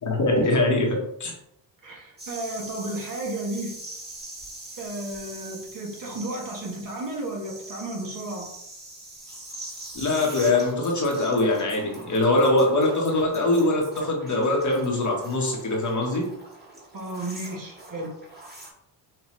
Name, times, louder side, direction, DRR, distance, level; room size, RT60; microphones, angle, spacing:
voice 1, 0.0-1.3 9.9-16.3, left 2 dB, 35° left, -1 dB, 1.3 m, -23 dB
voice 2, 1.8-3.7 4.8-8.5 16.9-18.1, right 1 dB, 40° right, -1 dB, 1.3 m, -33 dB
sound 1, 2.2-18.7, right 2 dB, 20° right, 1.8 m, -42 dB
5.9 x 2.6 x 3.1 m, 0.77 s
cardioid pair, 95°, 48 cm